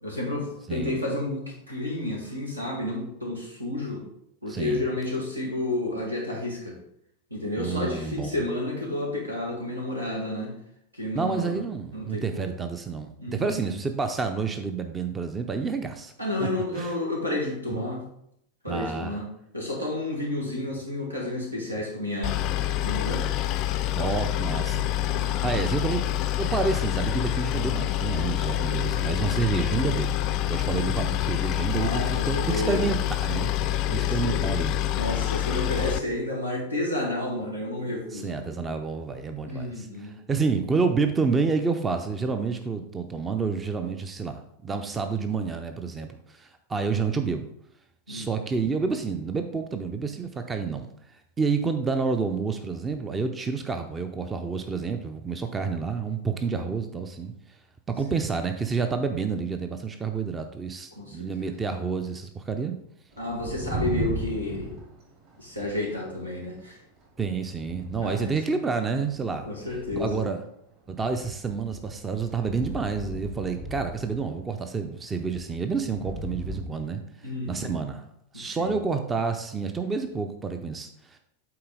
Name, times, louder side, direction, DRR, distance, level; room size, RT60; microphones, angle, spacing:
voice 1, 0.0-4.0 4.4-6.8 7.3-10.5 10.9-11.6 11.9-12.5 13.2-13.5 16.2-18.1 18.6-19.3 19.5-22.4 22.8-23.3 24.6-25.3 30.6-31.0 31.7-32.8 33.9-34.4 35.0-38.5 39.4-40.2 48.1-48.3 56.5-56.6 58.1-58.2 60.9-61.5 63.2-64.7 65.4-66.8 68.0-68.3 69.4-70.2 77.2-77.7 78.3-78.7, left 2 dB, 85° right, -2 dB, 1.8 m, -31 dB
voice 2, 4.5-4.8 7.6-8.4 11.1-16.1 16.4-16.5 16.8-17.0 18.7-19.2 24.0-24.9 25.1-26.0 26.4-30.1 30.5-34.8 38.1-47.5 48.1-50.9 51.4-57.3 57.9-62.8 67.2-69.5 69.9-70.4 70.9-78.1 78.3-81.2, right 5 dB, 15° right, 7 dB, 0.5 m, -29 dB
Boat Water vehicle, 22.2-36.0, left 13 dB, 40° left, 0.4 m, -27 dB
sound 1, 63.1-66.0 66.2-66.6 67.0-68.4 69.0-70.3 70.9-74.6 75.2-76.6, right 2 dB, 40° right, 2.2 m, -37 dB
8.7 x 4.0 x 3.8 m, 0.75 s
figure-of-eight pair, 90°, 0 cm